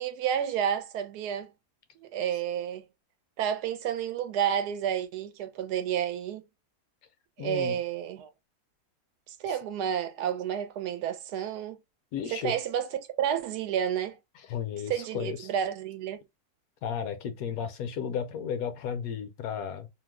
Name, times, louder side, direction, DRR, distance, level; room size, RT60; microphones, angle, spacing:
voice 1, 0.0-1.5 2.0-2.9 3.4-6.4 7.4-8.3 9.3-11.8 12.3-14.2 14.9-16.2, right 9 dB, 85° right, 1.1 m, -30 dB
voice 2, 7.4-7.8 12.1-12.5 14.5-15.5 16.8-19.9, left 7 dB, 70° left, 1.0 m, -33 dB
2.8 x 2.1 x 3.4 m
omnidirectional pair, 1.7 m